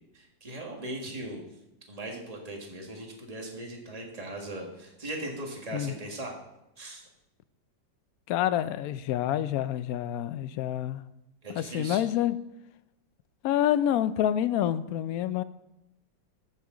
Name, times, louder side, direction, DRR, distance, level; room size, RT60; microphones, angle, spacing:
voice 1, 0.1-1.4 1.9-6.3 6.8-7.1 11.4-12.0, right 1 dB, 20° right, 0 dB, 1.7 m, -39 dB
voice 2, 8.3-11.0 11.5-12.4 13.4-15.4, left 11 dB, 75° left, 14 dB, 0.8 m, -27 dB
14.5 x 6.6 x 3.8 m, 0.89 s
omnidirectional pair, 2.0 m